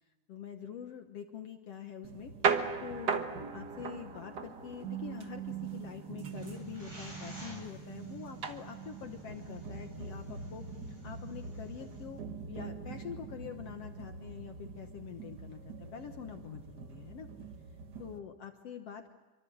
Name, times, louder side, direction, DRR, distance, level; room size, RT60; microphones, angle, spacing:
voice 1, 0.3-17.3 18.0-19.1, left 8 dB, 60° left, 5 dB, 2.0 m, -45 dB
sound 1, 2.0-18.2, right 6 dB, 50° right, 1.4 m, -39 dB
sound 2, 6.3-12.0, equal, 20° right, 8.0 m, -52 dB
27.0 x 24.5 x 7.9 m, 1.2 s
omnidirectional pair, 3.5 m